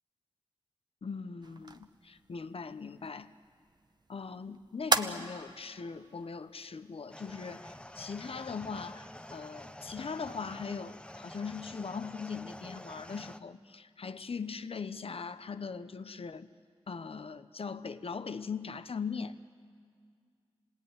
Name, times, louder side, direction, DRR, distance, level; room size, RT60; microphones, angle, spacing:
voice 1, 1.0-3.3 4.1-16.5 16.9-19.4, left 5 dB, 75° left, 12 dB, 0.9 m, -40 dB
sound 1, 1.4-8.3, right 2 dB, 45° right, 1.1 m, -39 dB
sound 2, 7.1-13.4, left 1 dB, 10° left, 0.9 m, -48 dB
27.5 x 19.0 x 9.6 m, 2.1 s
wide cardioid pair, 50°, 10 cm